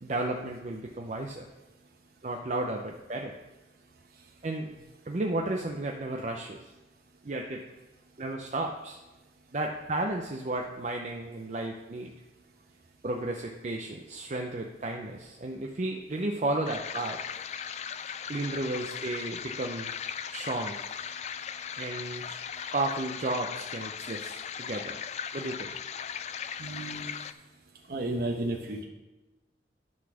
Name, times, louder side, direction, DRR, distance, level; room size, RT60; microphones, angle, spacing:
voice 1, 0.0-1.5 2.2-3.3 4.4-4.7 5.1-6.6 7.2-7.6 8.2-9.0 9.5-12.1 13.0-17.2 18.3-19.9 20.3-20.8 21.8-22.4 22.7-25.0 25.3-25.7, right 2 dB, 40° right, 2 dB, 0.5 m, -33 dB
sound 1, 16.7-27.3, left 8 dB, 40° left, 0.3 m, -38 dB
voice 2, 26.6-27.2 27.9-28.8, right 1 dB, 60° right, 1 dB, 0.9 m, -33 dB
11.0 x 4.1 x 6.0 m, 1.1 s
head